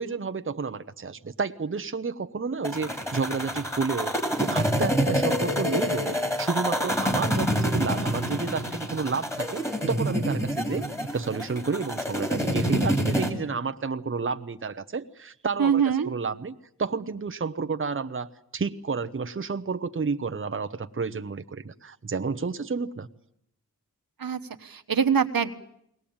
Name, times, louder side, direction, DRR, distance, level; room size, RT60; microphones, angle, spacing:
voice 1, 0.0-10.9 11.1-23.1, right 4 dB, 35° right, 9 dB, 0.9 m, -31 dB
sound 1, 2.6-13.3, equal, 10° left, 3.2 m, -27 dB
voice 2, 15.6-16.1 24.2-25.5, right 7 dB, 80° right, 8 dB, 1.3 m, -24 dB
22.0 x 18.5 x 8.8 m, 0.75 s
wide cardioid pair, 95°, 35 cm